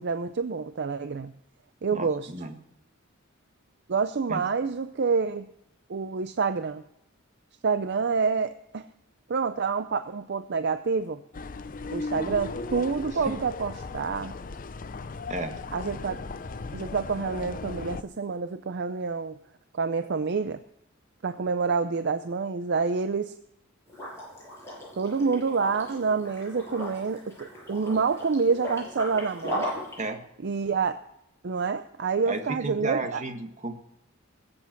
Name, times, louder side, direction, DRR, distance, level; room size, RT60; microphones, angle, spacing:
voice 1, 0.0-1.3 1.8-2.3 3.9-5.5 5.9-6.8 7.6-8.9 9.3-11.2 11.9-14.3 15.7-16.2 16.7-19.4 19.7-20.6 21.2-23.3 25.0-29.7 30.4-31.0 31.4-33.2, right 5 dB, 55° right, 11 dB, 0.5 m, -27 dB
voice 2, 1.9-2.5 4.3-4.4 12.2-12.3 13.3-13.4 15.3-15.5 30.0-30.2 32.2-33.8, right 2 dB, 35° right, 6 dB, 1.5 m, -33 dB
sound 1, 11.3-18.0, left 3 dB, 40° left, 0.6 m, -37 dB
Liquid, 23.9-30.0, equal, 15° left, 7.2 m, -37 dB
21.0 x 7.9 x 5.9 m, 0.82 s
head